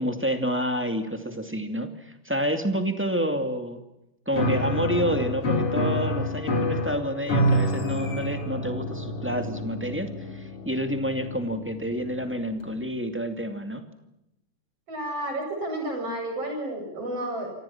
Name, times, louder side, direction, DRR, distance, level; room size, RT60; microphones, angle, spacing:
voice 1, 0.0-3.8 4.3-13.8, equal, 5° right, 6 dB, 1.8 m, -29 dB
Piano, 4.3-12.8, equal, 40° left, 3.8 m, -28 dB
voice 2, 14.9-17.5, right 1 dB, 45° right, 3 dB, 8.7 m, -31 dB
28.0 x 25.5 x 5.9 m, 0.88 s
omnidirectional pair, 3.8 m